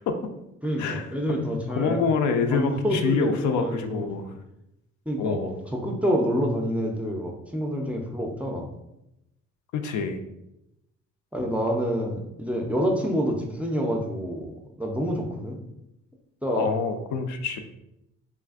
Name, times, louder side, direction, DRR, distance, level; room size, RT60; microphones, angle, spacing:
voice 1, 0.6-2.0 2.5-4.4 5.1-8.7 11.3-15.6 16.4-16.7, equal, 5° right, 0 dB, 0.4 m, -27 dB
voice 2, 1.8-4.3 5.2-5.5 9.7-10.2 16.5-17.6, left 5 dB, 75° left, 6 dB, 0.4 m, -26 dB
3.4 x 2.4 x 2.3 m, 0.86 s
cardioid pair, 90°, 30 cm